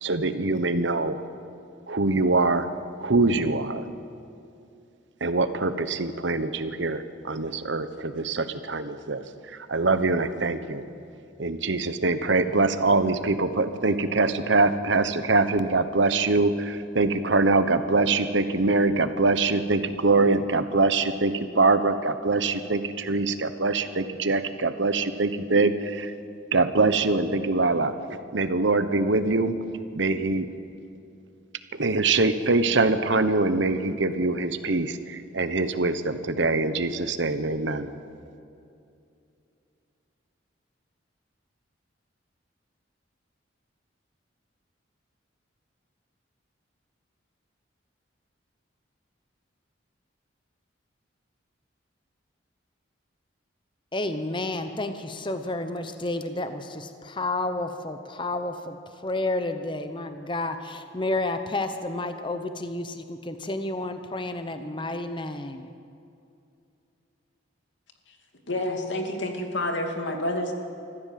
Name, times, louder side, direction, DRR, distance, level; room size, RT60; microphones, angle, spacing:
voice 1, 0.0-1.2 1.9-2.7 3.0-3.8 5.2-10.8 11.4-26.1 26.5-29.6 29.9-30.5 31.8-37.9, right 3 dB, 70° right, 11 dB, 1.1 m, -24 dB
voice 2, 53.9-58.8 59.0-65.7, left 2 dB, 25° left, 8 dB, 0.9 m, -31 dB
voice 3, 68.5-70.5, left 1 dB, 70° left, 3 dB, 2.5 m, -28 dB
25.0 x 14.5 x 7.6 m, 2.6 s
head